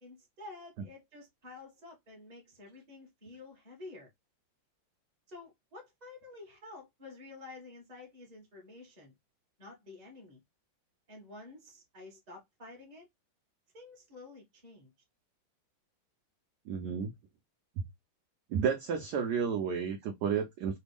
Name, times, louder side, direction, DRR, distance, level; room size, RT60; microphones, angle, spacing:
voice 1, 0.0-4.1 5.3-9.1 9.6-10.4 11.1-13.1 13.7-14.9, left 3 dB, 25° right, 1.2 m, -50 dB
voice 2, 16.7-17.1 17.8-17.9 18.5-20.8, right 7 dB, 70° right, 1.0 m, -31 dB
3.3 x 2.3 x 3.4 m
omnidirectional pair, 2.2 m